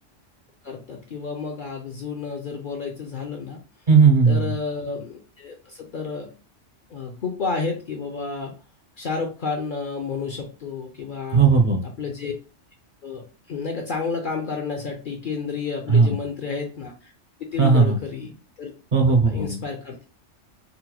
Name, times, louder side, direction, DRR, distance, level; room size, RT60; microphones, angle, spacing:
voice 1, 0.6-3.6 4.3-6.3 6.9-8.5 9.0-11.4 11.8-12.3 13.0-17.1 17.5-18.7 19.3-20.0, left 4 dB, 55° left, 2 dB, 0.6 m, -31 dB
voice 2, 3.9-4.5 11.3-11.8 15.9-16.2 17.6-18.0 18.9-19.6, right 5 dB, 50° right, 3 dB, 0.7 m, -16 dB
3.9 x 2.1 x 2.9 m, 0.35 s
omnidirectional pair, 1.3 m